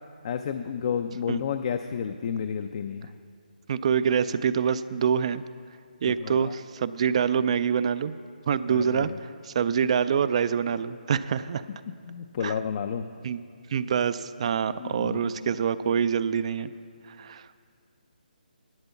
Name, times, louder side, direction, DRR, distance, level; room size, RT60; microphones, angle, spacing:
voice 1, 0.2-3.1 6.0-6.5 8.7-9.2 12.1-13.1 14.8-15.5, left 7 dB, 40° left, 8 dB, 0.4 m, -31 dB
voice 2, 3.7-5.4 6.0-8.1 8.5-11.6 12.4-12.5 13.2-13.4 13.7-16.7 17.1-17.5, right 7 dB, 40° right, 14 dB, 0.4 m, -26 dB
12.0 x 8.1 x 7.0 m, 2.2 s
figure-of-eight pair, 155°, 5 cm